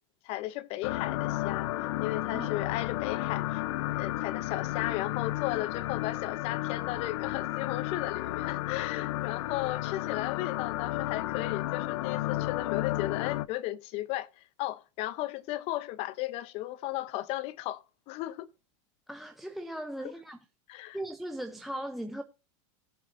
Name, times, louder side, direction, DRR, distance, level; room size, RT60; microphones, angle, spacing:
voice 1, 0.2-1.7 2.0-18.5 20.7-21.0, left 16 dB, 40° left, 0.7 m, -35 dB
sound 1, 0.8-13.5, left 16 dB, 75° left, 0.5 m, -32 dB
voice 2, 2.3-2.7 19.1-20.4 20.9-22.2, right 1 dB, ahead, 0.5 m, -38 dB
17.5 x 7.4 x 2.5 m
supercardioid pair, 160°, 16 cm